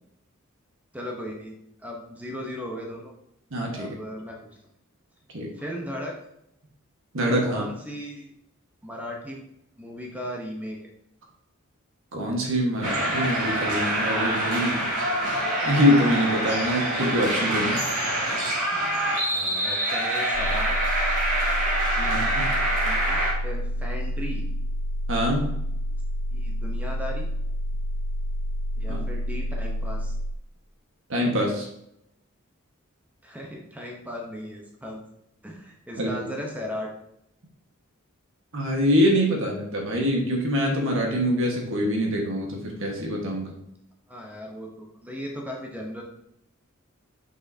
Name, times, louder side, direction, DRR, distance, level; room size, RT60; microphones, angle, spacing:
voice 1, 0.9-1.5 1.8-3.1 3.7-4.5 5.5-6.2 7.4-8.3 8.8-9.4 9.8-10.8 17.8-17.9 18.7-20.8 22.0-22.3 22.7-24.5 25.2-25.4 26.3-27.3 28.8-30.1 33.2-35.0 35.4-36.9 44.1-46.0, equal, 5° right, 0 dB, 0.8 m, -37 dB
voice 2, 3.5-3.9 5.3-5.5 7.1-7.6 12.1-14.9 15.6-17.8 22.0-22.5 25.1-25.4 28.9-29.0 31.1-31.7 36.0-36.3 38.5-43.6, equal, 65° right, 0 dB, 1.5 m, -24 dB
sound 1, 12.8-23.3, right 1 dB, 90° right, 2.5 m, -25 dB
sound 2, 20.3-30.4, equal, 85° left, 0.4 m, -29 dB
6.3 x 5.6 x 2.7 m, 0.79 s
head